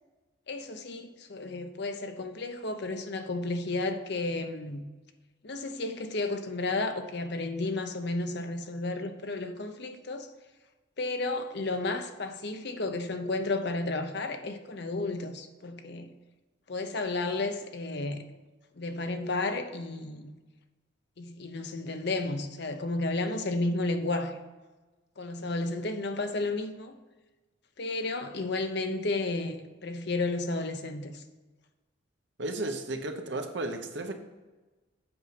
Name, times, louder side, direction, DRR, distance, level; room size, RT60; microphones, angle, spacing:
voice 1, 0.5-4.8 5.4-10.3 11.0-16.1 16.7-18.3 18.8-20.3 21.2-24.4 25.2-27.0 27.8-31.2, left 2 dB, 60° left, 0.8 m, -32 dB
voice 2, 32.4-34.1, right 2 dB, 65° right, 1.0 m, -34 dB
7.8 x 5.4 x 5.9 m
head